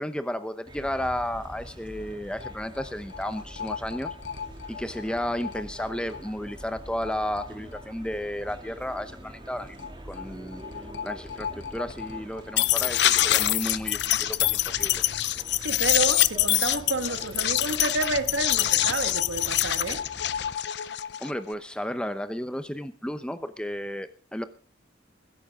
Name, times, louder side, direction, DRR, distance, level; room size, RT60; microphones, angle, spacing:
voice 1, 0.0-4.2 4.7-10.6 11.0-15.0 21.2-24.4, left 1 dB, 5° left, 0.8 m, -33 dB
sound 1, 0.6-20.5, right 1 dB, 25° right, 2.6 m, -45 dB
sound 2, 2.4-2.5 2.8-2.9 3.1-6.3 7.1-7.2 7.4-7.5 7.7-7.8 9.8-9.9 10.1-10.2 10.5-21.5, left 13 dB, 60° left, 0.6 m, -26 dB
voice 2, 15.6-20.0, right 3 dB, 90° right, 1.6 m, -30 dB
21.0 x 11.0 x 3.7 m
head